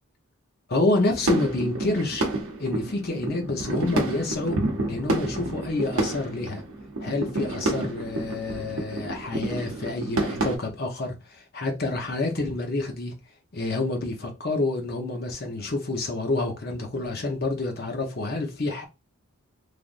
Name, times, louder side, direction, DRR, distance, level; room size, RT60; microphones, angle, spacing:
voice 1, 0.7-2.3 2.6-4.6 4.9-6.6 7.0-13.1 13.5-18.8, left 2 dB, 45° left, 0.7 m, -28 dB
sound 1, 1.0-10.6, right 2 dB, 70° right, 0.8 m, -29 dB
3.4 x 2.5 x 2.5 m
head